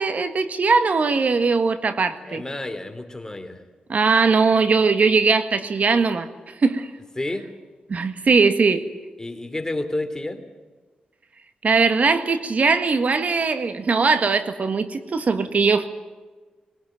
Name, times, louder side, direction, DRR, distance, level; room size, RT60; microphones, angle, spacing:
voice 1, 0.0-2.4 3.9-6.9 7.9-8.8 11.6-15.9, right 4 dB, 55° right, 10 dB, 1.6 m, -20 dB
voice 2, 2.2-3.6 7.2-7.5 9.2-10.4, left 2 dB, 20° left, 8 dB, 3.1 m, -30 dB
21.5 x 17.5 x 9.3 m, 1.3 s
cardioid pair, 55°, 3 cm